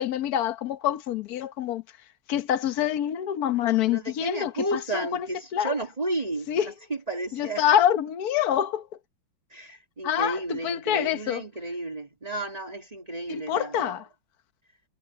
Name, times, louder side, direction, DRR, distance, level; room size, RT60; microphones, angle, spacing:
voice 1, 0.0-1.8 2.3-5.3 5.5-5.7 6.5-6.7 7.4-8.9 10.0-11.4 13.3-14.0, left 10 dB, 55° left, 1.4 m, -26 dB
voice 2, 3.9-7.6 9.5-14.0, right 2 dB, 20° right, 2.4 m, -32 dB
omnidirectional pair, 2.2 m